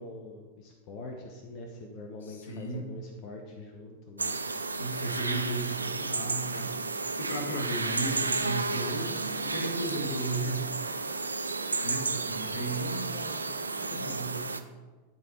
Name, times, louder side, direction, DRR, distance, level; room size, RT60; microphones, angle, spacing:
voice 1, 0.0-4.4 13.1-14.0, left 2 dB, 40° left, 3 dB, 0.9 m, -44 dB
voice 2, 2.2-2.8 4.8-10.6 11.8-13.1 13.9-14.4, right 2 dB, 65° left, 4 dB, 1.3 m, -35 dB
sound 1, 4.2-14.6, right 3 dB, 80° right, 0.4 m, -32 dB
10.5 x 4.2 x 4.4 m, 1.3 s
figure-of-eight pair, 90°, 0 cm